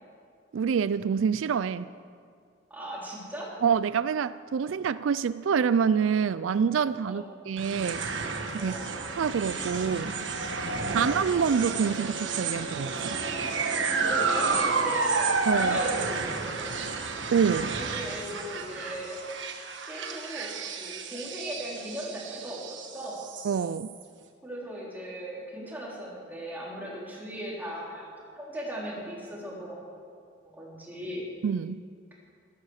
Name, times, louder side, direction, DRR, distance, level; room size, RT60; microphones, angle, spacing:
voice 1, 0.5-1.9 3.6-8.1 8.5-8.7 9.1-10.1 10.9-13.2 15.4-15.8 17.3-17.7 23.4-24.0 31.4-31.8, right 6 dB, 90° right, 16 dB, 0.4 m, -26 dB
voice 2, 2.7-3.5 7.0-7.3 8.6-8.9 14.0-15.3 15.6-16.7 17.7-19.2 19.9-20.5 20.8-23.2 24.4-28.0 28.3-29.8 30.4-31.3, right 1 dB, 10° right, -5 dB, 3.8 m, -38 dB
sound 1, 7.6-24.0, right 4 dB, 70° right, 1.3 m, -31 dB
15.0 x 12.5 x 6.5 m, 2.2 s
head